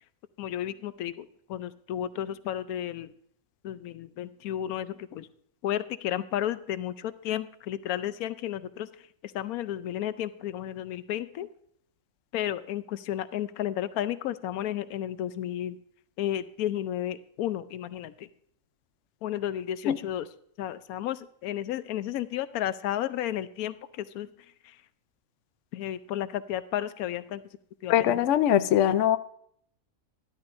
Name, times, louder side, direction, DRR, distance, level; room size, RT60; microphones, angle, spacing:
voice 1, 0.4-3.1 3.6-5.3 5.6-11.5 12.3-15.8 16.2-18.3 19.2-20.3 20.6-24.8 25.7-27.4 27.8-28.2, left 11 dB, 90° left, 14 dB, 1.1 m, -33 dB
voice 2, 27.9-29.2, left 11 dB, 65° left, 12 dB, 0.9 m, -22 dB
12.5 x 12.5 x 2.5 m, 0.66 s
omnidirectional pair, 1.5 m